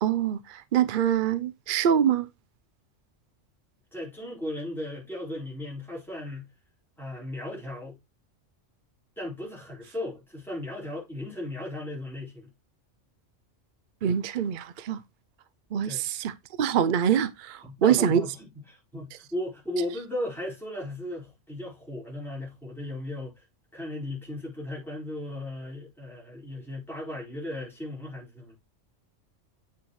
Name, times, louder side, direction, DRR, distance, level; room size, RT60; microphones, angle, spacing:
voice 1, 0.0-2.3 14.0-15.0 15.7-18.2, right 9 dB, 55° right, 0.6 m, -25 dB
voice 2, 3.9-6.5 7.0-8.0 9.2-12.5 15.8-16.1 17.6-23.4 23.7-28.6, left 1 dB, ahead, 4.2 m, -36 dB
8.1 x 5.8 x 3.0 m
omnidirectional pair, 1.3 m